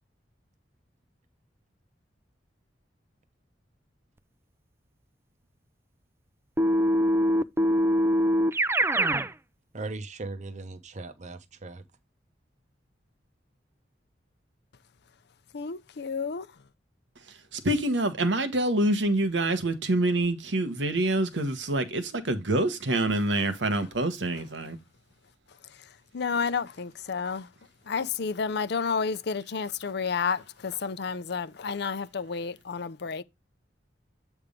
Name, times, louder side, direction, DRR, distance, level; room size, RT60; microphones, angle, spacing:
Keyboard (musical), 6.6-9.3, equal, 15° right, 0.4 m, -23 dB
voice 1, 9.7-11.8, right 3 dB, 40° right, 0.8 m, -38 dB
voice 2, 15.5-16.5 26.1-27.5 27.9-33.2, left 5 dB, 65° left, 0.6 m, -30 dB
voice 3, 17.5-24.8, right 1 dB, 85° right, 1.2 m, -26 dB
8.3 x 3.5 x 5.1 m
head